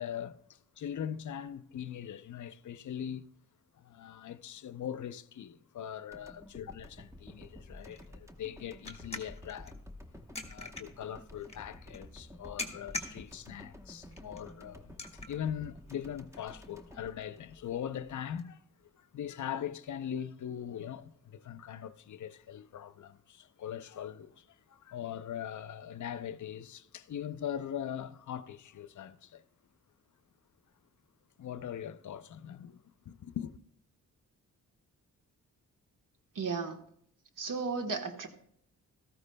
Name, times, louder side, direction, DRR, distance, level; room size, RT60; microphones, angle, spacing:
voice 1, 0.0-3.2 3.7-9.8 10.4-18.6 19.0-29.4 31.4-33.5, left 9 dB, 60° left, 0.6 m, -41 dB
sound 1, 6.1-18.3, left 1 dB, 10° right, 0.9 m, -52 dB
sound 2, 7.1-18.4, left 3 dB, 20° left, 1.6 m, -47 dB
voice 2, 36.3-36.8 37.4-38.3, right 4 dB, 65° right, 1.3 m, -34 dB
14.5 x 13.5 x 2.2 m
cardioid pair, 70°, 34 cm